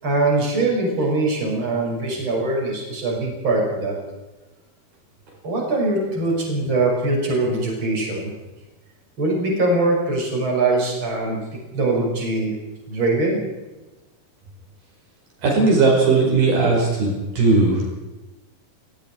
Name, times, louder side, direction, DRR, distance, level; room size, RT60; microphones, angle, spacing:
voice 1, 0.0-4.0 5.4-8.3 9.2-11.4 11.7-12.6 12.9-13.4, right 2 dB, 30° right, -2 dB, 6.9 m, -22 dB
voice 2, 15.4-17.9, right 3 dB, 65° right, -1 dB, 7.0 m, -18 dB
29.0 x 19.0 x 4.7 m, 1.1 s
omnidirectional pair, 4.6 m